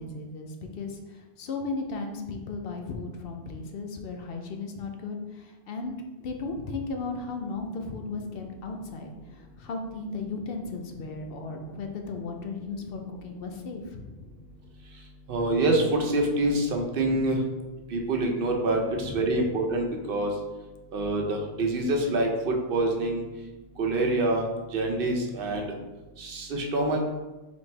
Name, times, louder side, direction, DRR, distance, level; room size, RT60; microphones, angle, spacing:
voice 1, 0.0-5.9 6.2-14.1 18.9-19.3, left 3 dB, 70° left, 3 dB, 0.8 m, -36 dB
voice 2, 15.3-17.4 17.9-20.3 20.9-23.2 23.8-24.4 24.7-25.7 26.2-27.1, right 2 dB, 65° right, 2 dB, 0.8 m, -26 dB
4.2 x 3.3 x 3.2 m, 1.1 s
omnidirectional pair, 1.1 m